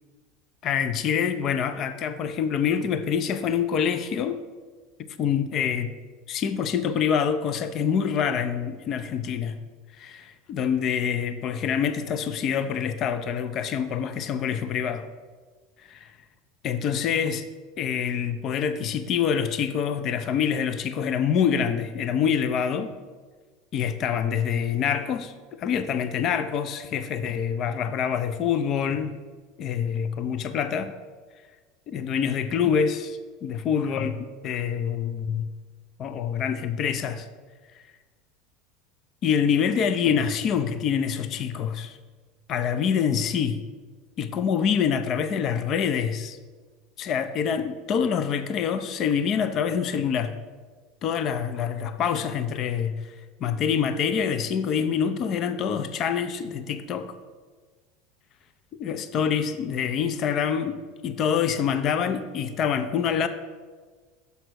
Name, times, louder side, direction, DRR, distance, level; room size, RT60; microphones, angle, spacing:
voice 1, 0.6-4.4 5.2-5.9 6.3-9.6 10.0-15.1 15.9-16.1 16.6-17.4 17.8-23.0 23.7-25.3 25.6-29.1 29.6-30.9 31.9-35.5 36.0-37.3 37.7-37.8 39.2-42.0 42.5-43.6 44.2-46.4 47.0-50.4 51.0-53.1 53.4-57.2 58.8-63.3, left 7 dB, 45° left, 11 dB, 0.5 m, -26 dB
6.9 x 5.4 x 6.2 m, 1.4 s
supercardioid pair, 120°, 0 cm